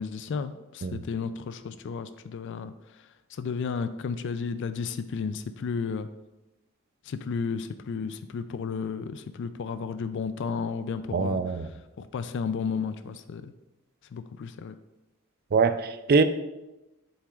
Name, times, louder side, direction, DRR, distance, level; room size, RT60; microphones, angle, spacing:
voice 1, 0.0-6.1 7.0-13.5 14.1-14.8, left 5 dB, 55° left, 11 dB, 0.3 m, -33 dB
voice 2, 11.1-11.7 15.5-16.2, right 4 dB, 45° right, 11 dB, 0.4 m, -23 dB
7.6 x 7.3 x 2.4 m, 0.98 s
head